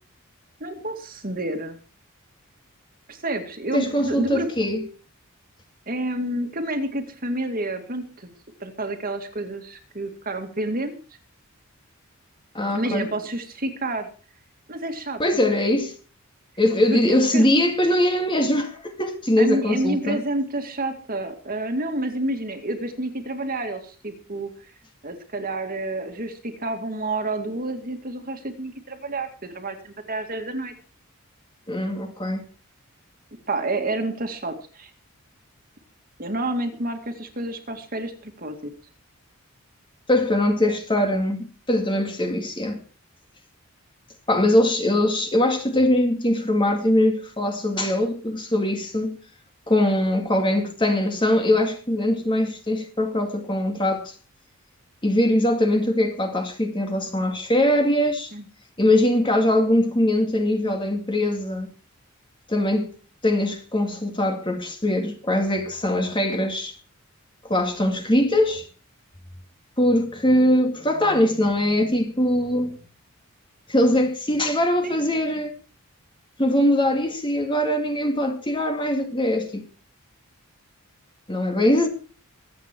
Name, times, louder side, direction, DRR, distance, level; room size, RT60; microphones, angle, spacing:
voice 1, 0.6-1.8 3.1-4.5 5.9-8.3 8.6-11.0 12.7-14.1 14.7-15.2 16.9-17.5 19.4-24.5 25.0-30.7 33.5-34.9 36.2-38.7 58.3-58.4 74.8-75.2, right 1 dB, 40° right, 2.2 m, -29 dB
voice 2, 3.7-4.9 12.5-13.1 15.2-16.0 16.6-20.2 31.7-32.4 40.1-42.8 44.3-49.2 49.7-54.1 55.0-58.3 58.8-61.7 62.5-62.9 63.2-66.8 67.4-68.7 69.8-72.8 73.7-75.5 76.4-79.7 81.3-81.9, left 1 dB, 20° left, 2.1 m, -22 dB
23.5 x 8.7 x 4.6 m
head